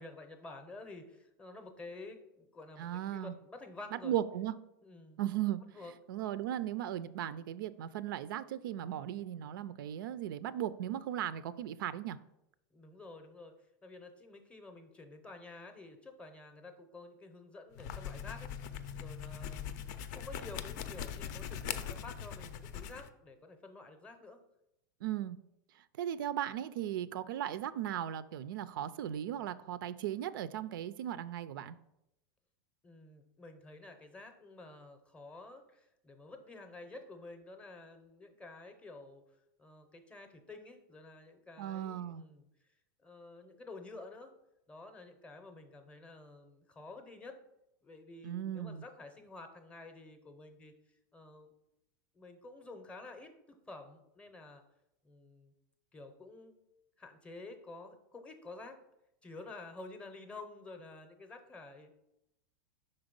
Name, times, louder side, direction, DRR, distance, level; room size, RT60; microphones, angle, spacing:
voice 1, 0.0-4.2 4.8-5.2 5.7-5.9 12.7-13.6 13.8-18.5 18.9-24.4 32.8-39.2 39.6-42.5 43.0-44.3 44.7-47.4 47.8-50.7 51.1-51.5 52.1-54.6 55.0-55.5 55.9-56.5 57.0-58.8 59.2-61.9, left 2 dB, 10° left, 7 dB, 0.6 m, -50 dB
voice 2, 2.8-3.3 3.9-4.5 5.2-5.6 6.1-12.2 25.0-25.4 26.0-31.8 41.6-42.2 48.2-48.8, right 11 dB, 80° right, 15 dB, 0.4 m, -37 dB
sound 1, 17.7-23.1, left 8 dB, 60° left, 0.5 m, -41 dB
5.7 x 4.0 x 5.2 m, 0.84 s
supercardioid pair, 155°, 11 cm